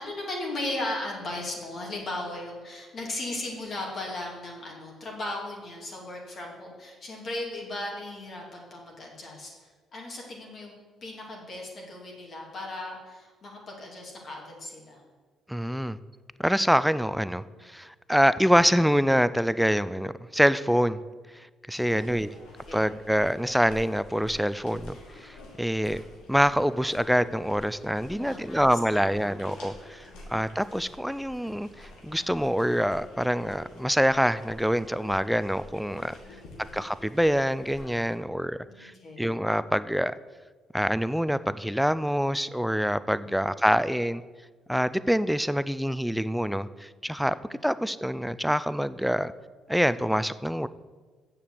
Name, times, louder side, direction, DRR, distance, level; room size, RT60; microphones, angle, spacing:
voice 1, 0.0-9.5 9.9-10.7 11.0-15.0 21.8-22.2 22.7-22.9 28.2-29.3 30.1-30.4 36.2-36.7 38.7-39.3 43.2-43.5 47.5-47.6, left 2 dB, 45° left, -2 dB, 2.7 m, -37 dB
voice 2, 15.5-16.0 16.4-21.0 21.3-22.3 22.7-26.0 26.3-36.2 36.7-38.9 39.2-40.1 40.7-44.2 44.7-47.3 47.6-49.3 49.7-50.7, equal, ahead, 15 dB, 0.4 m, -25 dB
sound 1, 21.7-38.2, left 1 dB, 80° left, 2.4 m, -49 dB
7.1 x 6.9 x 7.9 m, 1.4 s
cardioid pair, 80°, 0 cm